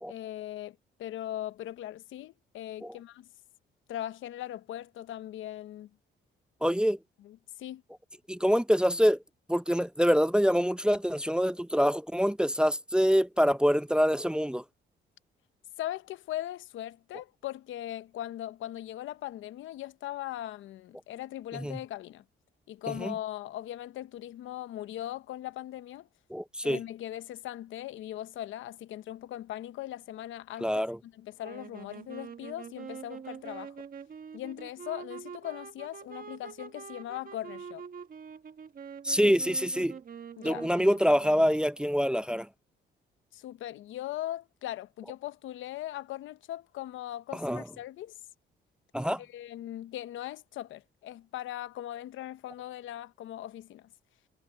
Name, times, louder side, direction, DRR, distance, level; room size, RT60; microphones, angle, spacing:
voice 1, 0.1-3.3 3.9-5.9 7.2-7.8 15.8-22.2 22.7-26.1 26.6-33.9 34.3-37.8 40.4-40.7 43.3-48.1 49.2-53.9, left 13 dB, 80° left, 0.9 m, -39 dB
voice 2, 6.6-7.0 8.3-9.2 9.5-14.6 21.5-21.8 23.0-23.1 26.3-26.8 30.6-31.0 39.0-39.9 40.4-42.5 47.4-47.6 48.9-49.2, equal, 5° right, 0.5 m, -25 dB
sound 1, 31.4-41.8, right 7 dB, 45° right, 1.5 m, -45 dB
cardioid pair, 90°, 20 cm